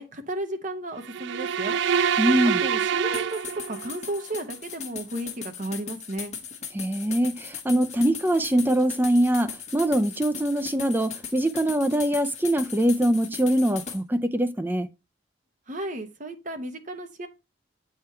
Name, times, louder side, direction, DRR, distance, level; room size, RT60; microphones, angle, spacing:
voice 1, 0.0-1.8 2.6-3.4 3.7-6.3 15.7-17.3, right 1 dB, 45° right, 1.0 m, -34 dB
sound 1, 1.1-4.1, right 7 dB, 75° right, 0.3 m, -26 dB
voice 2, 2.2-2.6 6.7-14.9, right 1 dB, 10° right, 0.5 m, -23 dB
sound 2, 3.1-14.0, left 6 dB, 35° left, 1.4 m, -38 dB
7.8 x 3.7 x 4.4 m
head